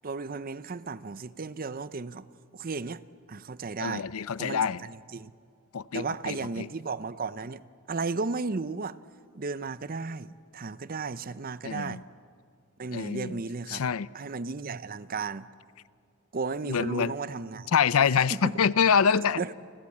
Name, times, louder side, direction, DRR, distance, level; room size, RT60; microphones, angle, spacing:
voice 1, 0.0-2.3 2.5-3.0 3.3-4.1 4.4-5.3 5.9-7.6 7.9-9.0 9.3-12.0 12.8-13.8 14.1-15.5 16.3-17.7 18.3-18.5 19.4-19.5, right 4 dB, 40° right, 0.6 m, -34 dB
voice 2, 3.8-4.8 5.7-6.7 11.6-12.0 12.9-13.4 13.7-14.1 16.6-17.1 17.7-19.4, left 6 dB, 85° left, 0.6 m, -25 dB
29.0 x 21.5 x 8.6 m
head